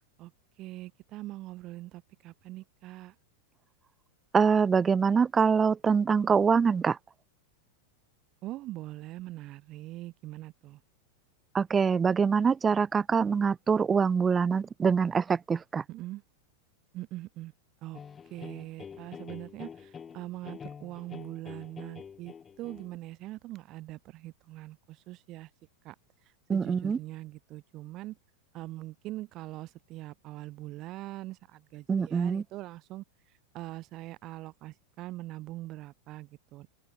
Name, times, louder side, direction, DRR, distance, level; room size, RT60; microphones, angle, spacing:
voice 1, 0.6-3.1 8.4-10.8 15.9-16.2 16.9-17.5 17.8-18.0 18.3-25.5 25.8-26.0 26.5-28.2 28.5-33.0 33.5-36.7, right 17 dB, 35° right, 6.9 m, -42 dB
voice 2, 4.3-7.0 11.5-15.8 26.5-27.0 31.9-32.4, right 6 dB, 15° right, 0.4 m, -24 dB
sound 1, 17.9-23.0, left 7 dB, 20° left, 4.8 m, -46 dB
open air
figure-of-eight pair, 90°, 0 cm